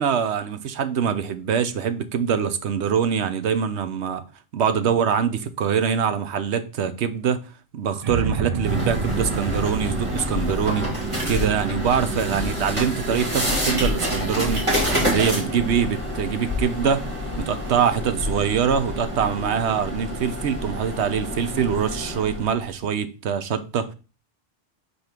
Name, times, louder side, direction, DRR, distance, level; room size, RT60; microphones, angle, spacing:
voice 1, 0.0-4.2 4.5-7.4 7.7-10.9 11.3-14.7 15.0-17.0 17.4-23.9, right 7 dB, 70° right, 1.0 m, -24 dB
sound 1, 8.0-14.1, right 5 dB, 45° right, 0.6 m, -30 dB
sound 2, 8.6-22.6, equal, 25° right, 2.3 m, -27 dB
5.4 x 4.2 x 5.9 m
omnidirectional pair, 1.2 m